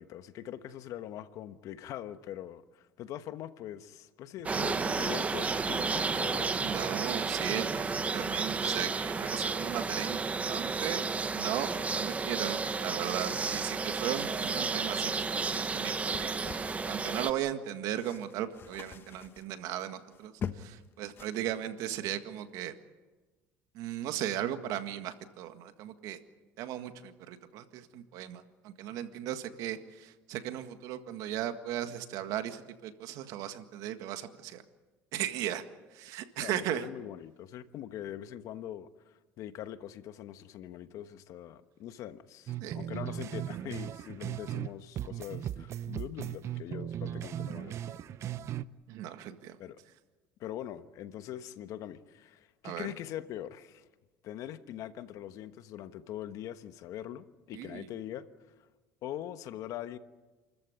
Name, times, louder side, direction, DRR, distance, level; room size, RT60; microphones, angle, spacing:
voice 1, 0.0-6.5 36.4-48.0 49.6-49.8 50.4-53.9 54.2-58.3 59.0-60.0, left 11 dB, 60° left, 11 dB, 1.2 m, -42 dB
sound 1, 4.4-17.3, right 4 dB, 20° right, 1.1 m, -32 dB
voice 2, 6.6-10.2 10.5-11.0 11.3-16.5 16.9-22.7 23.7-26.2 26.6-34.6 35.1-35.6 35.9-36.9 42.6-42.9 48.9-49.6 52.6-53.0 57.5-57.9, right 11 dB, 70° right, 9 dB, 1.8 m, -37 dB
sound 2, 16.1-17.5 17.9-20.8 21.1-21.7 22.0-22.2, left 7 dB, 35° left, 1.1 m, -44 dB
sound 3, 42.5-44.7 45.0-48.6, right 11 dB, 50° right, 0.7 m, -37 dB
29.0 x 14.0 x 9.5 m, 1.2 s
cardioid pair, 115°, 6 cm